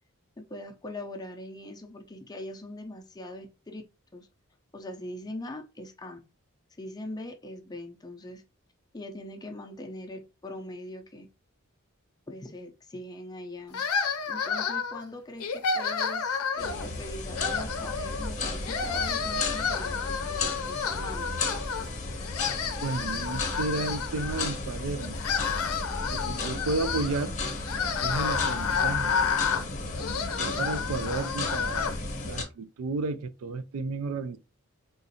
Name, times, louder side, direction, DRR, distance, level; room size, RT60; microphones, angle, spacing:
voice 1, 0.4-3.8 4.1-4.3 4.7-6.2 6.8-8.4 8.9-11.3 12.3-13.8 14.3-21.4, left 1 dB, 20° left, 0.4 m, -41 dB
sound 1, 13.7-15.0 15.4-16.9 17.3-18.3 18.6-21.9 22.2-24.5 25.0-32.0, left 6 dB, 85° left, 0.5 m, -30 dB
sound 2, 16.6-32.4, left 3 dB, 35° left, 0.8 m, -34 dB
voice 2, 22.8-25.2 26.1-27.3 28.0-29.1 30.4-31.9 32.2-34.4, right 3 dB, 80° right, 0.4 m, -32 dB
3.8 x 2.5 x 2.7 m
head